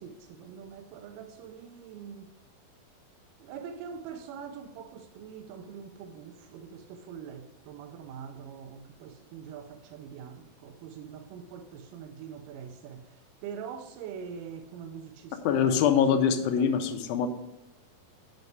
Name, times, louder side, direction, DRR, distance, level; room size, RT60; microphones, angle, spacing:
voice 1, 0.0-2.3 3.4-16.2 16.6-17.0, right 7 dB, 80° right, 2.1 m, -44 dB
voice 2, 15.5-17.3, left 7 dB, 90° left, 2.5 m, -24 dB
7.9 x 5.4 x 4.6 m
omnidirectional pair, 4.1 m